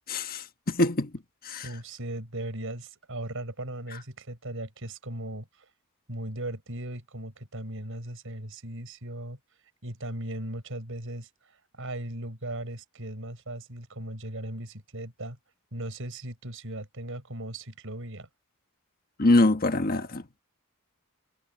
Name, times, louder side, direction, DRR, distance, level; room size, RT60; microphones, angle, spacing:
voice 1, 0.1-1.1 1.4-1.7 19.2-20.2, left 2 dB, 45° left, 1.4 m, -24 dB
voice 2, 1.6-5.5 6.1-9.4 9.8-15.4 15.7-18.3, right 1 dB, 65° right, 6.4 m, -37 dB
head